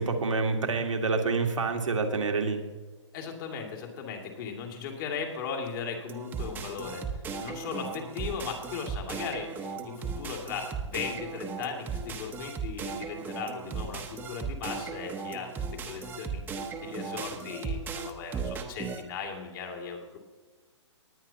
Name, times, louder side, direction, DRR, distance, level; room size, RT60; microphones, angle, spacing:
voice 1, 0.0-2.6, right 4 dB, 90° right, 3 dB, 1.9 m, -27 dB
voice 2, 3.1-20.2, left 6 dB, 45° left, 2 dB, 2.5 m, -38 dB
sound 1, 6.1-19.0, right 5 dB, 10° right, 0.9 m, -36 dB
19.5 x 9.2 x 2.9 m, 1.4 s
hypercardioid pair, 140°, 16 cm